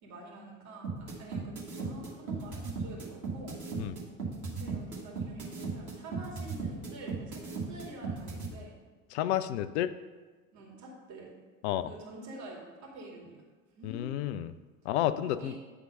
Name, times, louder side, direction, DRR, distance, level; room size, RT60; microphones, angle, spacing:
voice 1, 0.0-3.6 4.4-8.7 10.5-11.3 11.8-13.4 13.8-14.1 15.2-15.6, right 2 dB, 40° right, -2 dB, 2.4 m, -47 dB
sound 1, 0.8-8.5, right 5 dB, 80° right, 1.9 m, -36 dB
voice 2, 9.1-9.9 11.6-11.9 13.8-14.5 14.8-15.6, left 12 dB, 50° left, 13 dB, 0.5 m, -31 dB
9.7 x 3.8 x 5.4 m, 1.3 s
figure-of-eight pair, 75°, 42 cm